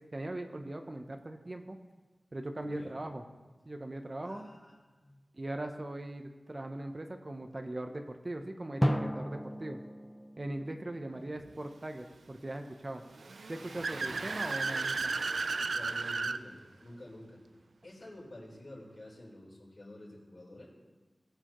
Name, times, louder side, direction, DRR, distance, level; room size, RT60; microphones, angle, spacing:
voice 1, 0.0-1.8 2.3-3.2 3.7-4.6 5.3-9.8 10.4-13.0 13.5-15.1, right 1 dB, 35° right, 6 dB, 0.6 m, -40 dB
voice 2, 2.6-3.0 4.2-5.2 13.9-14.4 15.7-17.4 17.8-20.7, left 1 dB, 50° left, -5 dB, 3.8 m, -50 dB
Drum, 8.8-11.5, equal, 5° left, 0.3 m, -34 dB
Car / Accelerating revving vroom, 13.2-16.4, right 4 dB, 75° right, 0.3 m, -34 dB
18.5 x 6.8 x 3.0 m, 1.3 s
wide cardioid pair, 85°, 0 cm